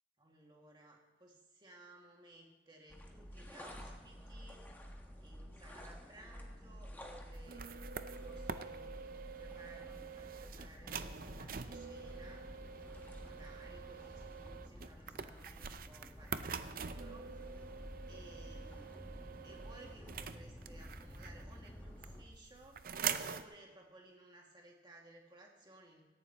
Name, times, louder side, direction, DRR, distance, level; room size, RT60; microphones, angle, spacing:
voice 1, 0.2-4.7 5.2-7.7 8.2-9.1 9.4-12.5 13.2-17.4 18.1-22.8 23.2-26.0, right 1 dB, 25° right, -1 dB, 2.2 m, -59 dB
sound 1, 2.9-22.2, equal, 10° left, 1.5 m, -51 dB
sound 2, 7.3-21.7 22.0-23.4, right 7 dB, 50° right, 0.6 m, -45 dB
18.0 x 14.0 x 3.0 m, 1.4 s
head